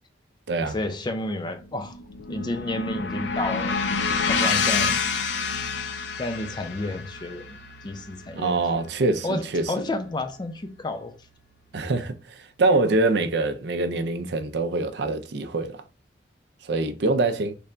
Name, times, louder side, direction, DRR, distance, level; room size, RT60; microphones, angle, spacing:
voice 1, 0.6-2.0 2.3-3.8 4.3-5.0 6.2-7.6 7.8-8.5 9.2-11.1, left 2 dB, 25° left, 0.4 m, -31 dB
sound 1, 1.6-9.9, left 4 dB, 80° left, 0.5 m, -28 dB
voice 2, 8.3-9.7 11.7-15.8 16.6-17.5, right 2 dB, 70° right, 0.5 m, -24 dB
3.3 x 2.2 x 3.8 m
head